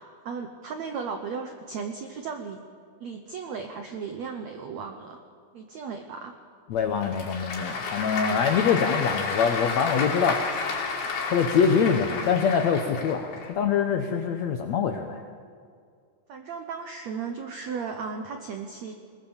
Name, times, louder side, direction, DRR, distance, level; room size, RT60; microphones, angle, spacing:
voice 1, 0.0-2.6 3.0-5.2 5.5-6.3 8.5-8.9 16.3-18.9, right 5 dB, 85° right, 6 dB, 1.5 m, -36 dB
voice 2, 6.7-10.4 11.3-15.2, left 6 dB, 85° left, 6 dB, 1.5 m, -24 dB
Applause / Crowd, 6.7-13.5, left 4 dB, 70° left, 4.7 m, -31 dB
21.0 x 20.0 x 7.3 m, 2.2 s
omnidirectional pair, 4.7 m